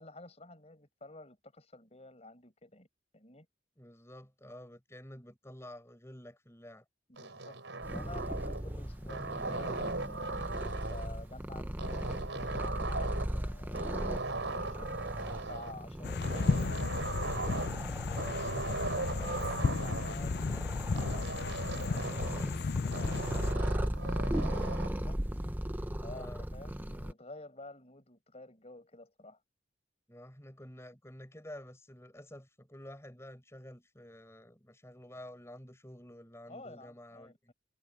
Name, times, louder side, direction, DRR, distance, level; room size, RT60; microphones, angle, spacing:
voice 1, 0.0-2.9 3.1-3.5 7.1-7.6 7.9-10.4 10.9-17.4 17.9-25.2 25.4-25.5 26.0-29.4 36.5-37.5, left 2 dB, 35° left, 5.2 m, -51 dB
voice 2, 3.8-6.8 25.7-26.4 30.1-37.5, left 1 dB, 15° left, 6.0 m, -50 dB
sound 1, 7.2-8.7 9.1-11.2 11.8-13.4 13.7-15.7 16.2-17.8 18.2-20.2 21.0-22.5 22.9-25.0, right 3 dB, 80° right, 4.4 m, -38 dB
Purr, 7.8-27.1, equal, 10° right, 0.9 m, -37 dB
sound 2, 16.0-23.5, left 4 dB, 55° left, 0.5 m, -34 dB
head